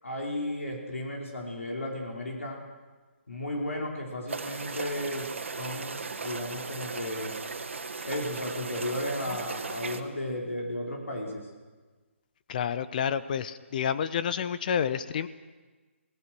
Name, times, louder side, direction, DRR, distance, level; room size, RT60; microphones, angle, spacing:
voice 1, 0.0-2.6 3.3-5.3 5.6-7.4 8.0-11.5, left 1 dB, 80° left, 0 dB, 4.9 m, -34 dB
sound 1, 4.3-10.0, right 4 dB, 70° right, 2.0 m, -37 dB
voice 2, 12.5-15.3, left 8 dB, 40° left, 14 dB, 0.9 m, -29 dB
27.0 x 18.5 x 6.2 m, 1.3 s
figure-of-eight pair, 145°, 7 cm